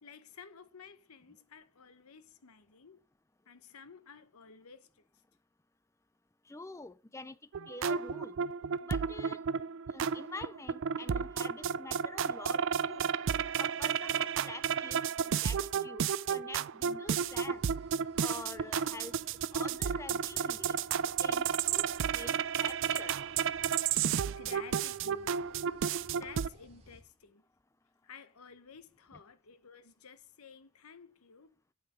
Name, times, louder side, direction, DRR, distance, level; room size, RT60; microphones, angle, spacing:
voice 1, 0.0-3.0 3.5-4.9 24.3-25.5 26.1-27.4 28.0-31.6, left 5 dB, 90° left, 0.9 m, -53 dB
voice 2, 6.5-7.4 7.7-8.4 8.8-9.4 9.9-13.1 13.6-17.6 18.2-19.1 19.5-20.8 21.2-21.9 22.1-23.1 29.1-29.2, left 3 dB, 15° left, 0.5 m, -46 dB
sound 1, 7.5-26.5, right 7 dB, 60° right, 0.4 m, -32 dB
sound 2, 17.0-27.0, equal, 30° right, 2.0 m, -60 dB
8.6 x 5.7 x 7.9 m
head